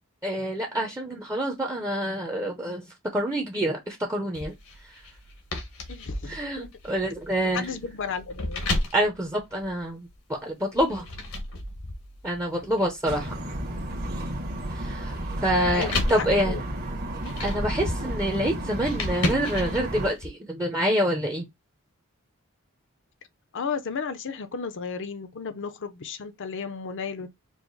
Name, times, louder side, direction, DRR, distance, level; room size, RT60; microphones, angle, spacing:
voice 1, 0.2-2.8 3.1-4.5 6.3-7.7 8.9-11.1 12.2-13.3 14.7-15.2 15.4-16.6 17.4-21.5, equal, 15° right, 0.7 m, -27 dB
sound 1, 4.3-10.2 10.7-20.3, left 2 dB, 80° left, 1.2 m, -34 dB
voice 2, 5.9-6.7 7.5-8.6 15.7-16.6 23.5-27.3, left 5 dB, 60° left, 0.6 m, -33 dB
sound 2, 13.1-20.1, right 1 dB, 45° right, 1.2 m, -32 dB
4.7 x 2.1 x 3.9 m
head